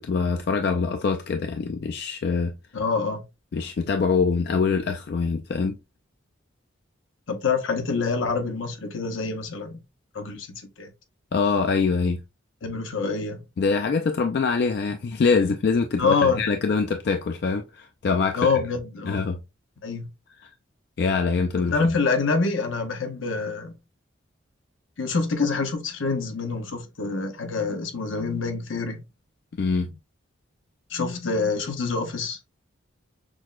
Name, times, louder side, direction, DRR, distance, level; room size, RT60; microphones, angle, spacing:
voice 1, 0.0-2.5 3.5-5.8 11.3-12.2 13.6-18.5 19.1-19.4 20.4-20.5 21.0-21.7 29.5-30.0, left 4 dB, 50° left, 0.3 m, -24 dB
voice 2, 2.7-3.2 7.3-9.8 10.1-10.9 12.6-13.4 16.0-16.4 18.3-19.2 19.8-20.1 21.7-23.7 25.0-29.0 30.9-32.4, left 4 dB, 75° left, 0.8 m, -26 dB
6.0 x 2.1 x 2.3 m
head